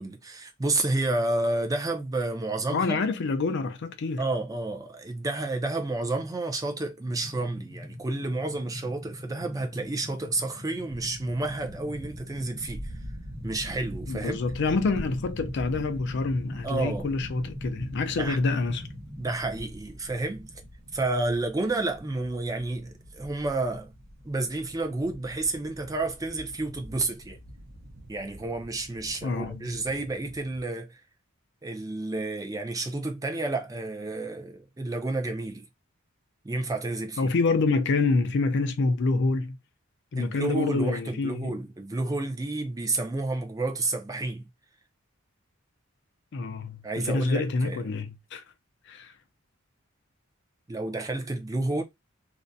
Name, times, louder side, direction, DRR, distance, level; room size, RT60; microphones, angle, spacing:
voice 1, 0.0-3.0 4.2-12.9 13.4-14.4 16.6-17.1 18.2-18.4 19.2-20.5 20.9-23.9 24.2-27.4 28.1-31.0 31.6-35.7 36.4-37.3 40.2-44.5 46.8-47.8 50.7-51.8, right 2 dB, 15° right, 0.5 m, -30 dB
voice 2, 2.7-4.2 14.1-18.9 29.2-29.7 37.2-39.6 40.1-41.5 46.3-48.4 48.9-49.1, left 3 dB, 60° left, 0.4 m, -27 dB
sound 1, 7.0-19.3, left 1 dB, 35° right, 1.2 m, -43 dB
sound 2, 10.9-30.6, equal, 65° right, 0.8 m, -44 dB
2.5 x 2.1 x 2.6 m
head